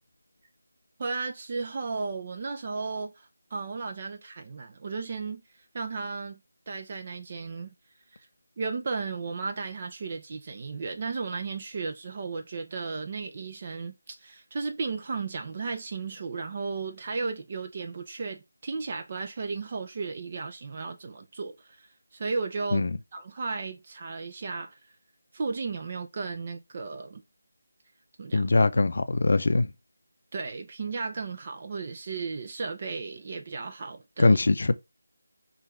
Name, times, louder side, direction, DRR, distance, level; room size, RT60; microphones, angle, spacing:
voice 1, 1.0-5.4 5.7-6.4 6.7-7.7 8.1-8.3 8.6-22.9 23.1-24.8 25.3-27.2 28.2-28.5 30.3-34.4, right 4 dB, 30° right, 0.4 m, -34 dB
voice 2, 28.3-29.7 34.2-34.7, left 3 dB, 55° left, 0.4 m, -22 dB
5.0 x 2.3 x 3.2 m
figure-of-eight pair, 175°, 0 cm